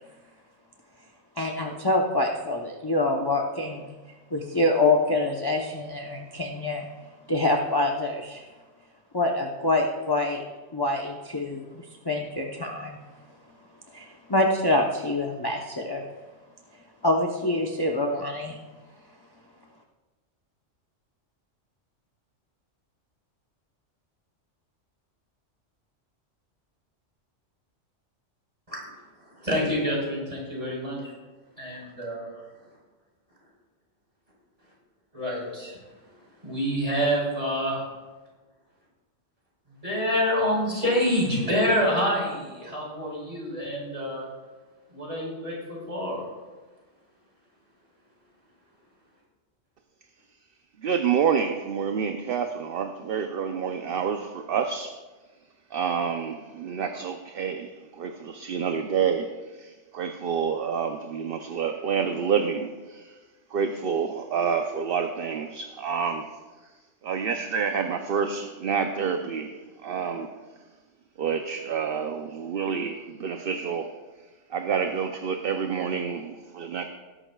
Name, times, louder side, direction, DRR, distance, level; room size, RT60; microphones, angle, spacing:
voice 1, 1.4-3.9 4.3-6.9 7.3-8.4 9.1-10.4 10.7-13.0 13.9-16.0 17.0-18.6, left 2 dB, 20° left, 1 dB, 0.8 m, -26 dB
voice 2, 29.3-31.1 31.6-32.3 35.1-35.8 36.4-37.8 39.8-44.2 44.9-46.3, equal, 30° right, -4 dB, 4.9 m, -27 dB
voice 3, 50.8-55.0 55.7-63.2 63.5-66.3 67.0-70.3 71.2-73.9 74.5-76.9, right 6 dB, 55° right, 6 dB, 0.8 m, -28 dB
19.5 x 11.5 x 2.3 m, 1.3 s
omnidirectional pair, 1.3 m